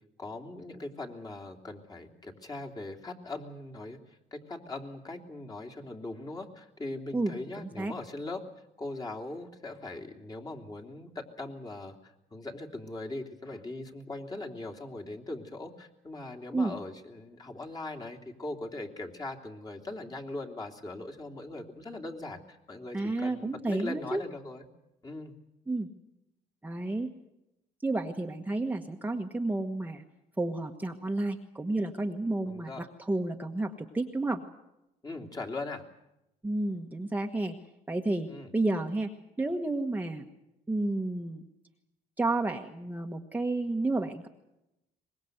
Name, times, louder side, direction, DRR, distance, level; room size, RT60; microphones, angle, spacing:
voice 1, 0.2-4.0 4.3-8.4 8.8-24.7 25.0-25.3 32.4-32.8 35.0-35.8 38.3-38.5, left 2 dB, 25° left, 2 dB, 3.1 m, -40 dB
voice 2, 7.1-7.9 16.5-16.7 22.9-24.2 25.7-25.9 26.6-27.1 27.8-30.0 30.4-34.4 36.4-37.5 37.9-39.1 39.4-40.3 40.7-41.4 42.2-44.3, right 2 dB, 10° right, 3 dB, 1.4 m, -31 dB
24.0 x 21.0 x 8.1 m, 0.89 s
cardioid pair, 110°, 17 cm